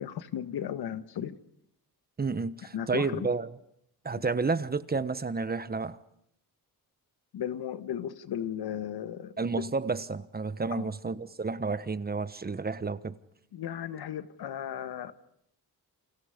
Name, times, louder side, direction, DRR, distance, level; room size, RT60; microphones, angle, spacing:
voice 1, 0.0-1.4 2.7-3.3 7.3-9.6 10.7-10.9 13.5-15.1, left 10 dB, 85° left, 1.8 m, -35 dB
voice 2, 2.2-3.5 4.0-6.0 9.4-13.1, right 4 dB, 25° right, 1.2 m, -31 dB
30.0 x 29.0 x 5.2 m
wide cardioid pair, 130°, 37 cm